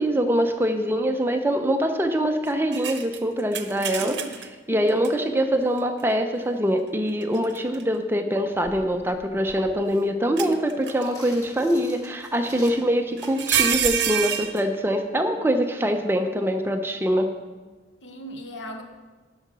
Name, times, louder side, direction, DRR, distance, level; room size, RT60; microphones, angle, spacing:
voice 1, 0.0-4.2 4.7-17.3, equal, 10° right, 6 dB, 0.6 m, -24 dB
sound 1, 2.7-4.5 5.0-5.1 7.2-7.8 8.6-9.7 10.4-11.1 12.6-12.7 13.2-14.6, right 8 dB, 75° right, 0.7 m, -27 dB
voice 2, 4.0-4.4 18.0-18.8, equal, 90° left, 4 dB, 1.2 m, -38 dB
sound 2, 10.7-13.6, equal, 20° left, 1.6 m, -46 dB
10.5 x 5.6 x 6.1 m, 1.3 s
head